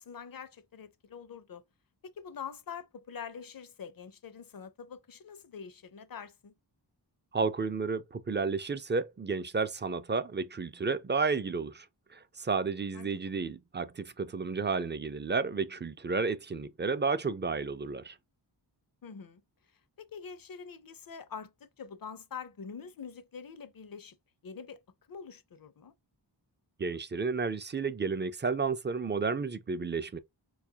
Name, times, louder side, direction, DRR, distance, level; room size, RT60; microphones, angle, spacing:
voice 1, 0.0-1.6 2.0-6.5 12.9-13.1 19.0-19.4 20.0-24.2 24.4-24.8 25.1-25.9, left 6 dB, 50° left, 0.5 m, -45 dB
voice 2, 7.3-11.9 12.1-18.2 26.8-30.2, right 4 dB, 25° right, 0.3 m, -32 dB
4.2 x 2.4 x 2.7 m
wide cardioid pair, 55°, 44 cm